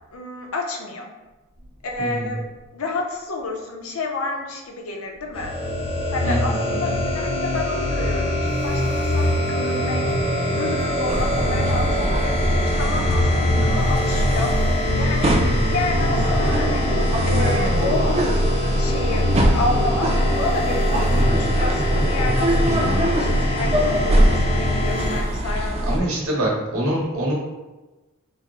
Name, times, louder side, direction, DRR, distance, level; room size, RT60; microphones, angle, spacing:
voice 1, 0.1-1.1 1.8-2.4 2.7-5.6 6.1-10.0 10.6-14.5 15.0-15.3 15.6-16.9 17.3-18.2 18.7-19.3 19.5-26.5, left 2 dB, 70° left, 1 dB, 0.6 m, -30 dB
voice 2, 2.0-2.3 6.2-7.0 13.5-13.8 15.4-15.7 21.1-21.5 22.6-23.1 25.6-27.3, right 1 dB, 75° right, -4 dB, 1.1 m, -26 dB
sound 1, 5.3-25.2, left 1 dB, 25° left, 0.5 m, -24 dB
sound 2, 8.5-26.0, right 1 dB, 45° right, 1.0 m, -33 dB
sound 3, 11.1-26.0, right 1 dB, 30° right, 0.4 m, -22 dB
4.0 x 2.0 x 3.6 m, 1.1 s
head